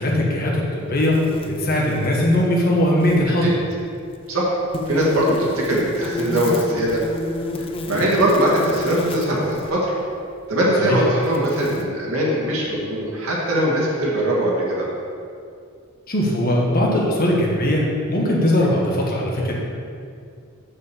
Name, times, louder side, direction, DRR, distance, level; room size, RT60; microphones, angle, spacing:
voice 1, 0.0-3.5 10.8-11.0 16.1-19.5, left 1 dB, 45° left, -2 dB, 1.5 m, -20 dB
sound 1, 1.0-2.5 2.8-3.3 4.7-9.7 10.6-10.7 11.2-11.9, left 2 dB, 25° left, 0.5 m, -30 dB
voice 2, 4.9-7.0 7.6-9.9 10.5-14.9, right 1 dB, 85° right, -5 dB, 2.0 m, -21 dB
6.7 x 4.9 x 6.9 m, 2.3 s
head